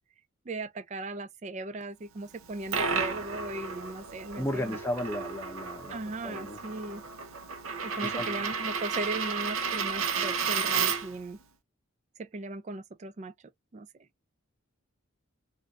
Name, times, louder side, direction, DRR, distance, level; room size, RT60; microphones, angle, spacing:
voice 1, 0.5-4.8 5.9-7.0 7.8-11.4 12.2-13.3 13.7-13.9, right 2 dB, 35° right, 0.3 m, -37 dB
Coin (dropping), 2.4-11.2, right 5 dB, 75° right, 0.6 m, -33 dB
voice 2, 4.4-6.6 8.0-8.3, left 1 dB, 10° left, 0.8 m, -34 dB
2.5 x 2.2 x 3.9 m
head